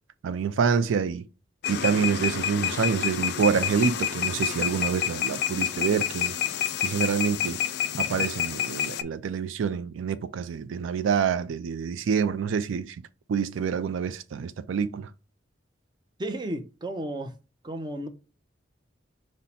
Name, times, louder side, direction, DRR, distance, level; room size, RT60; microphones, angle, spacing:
voice 1, 0.2-1.2 1.7-6.3 6.8-7.6 8.0-13.0 13.3-15.1, right 6 dB, 85° right, 0.3 m, -27 dB
sound 1, 1.6-9.0, left 9 dB, 55° left, 0.3 m, -28 dB
voice 2, 16.2-17.3 17.6-18.1, right 1 dB, 25° right, 0.5 m, -33 dB
5.4 x 2.1 x 4.1 m
head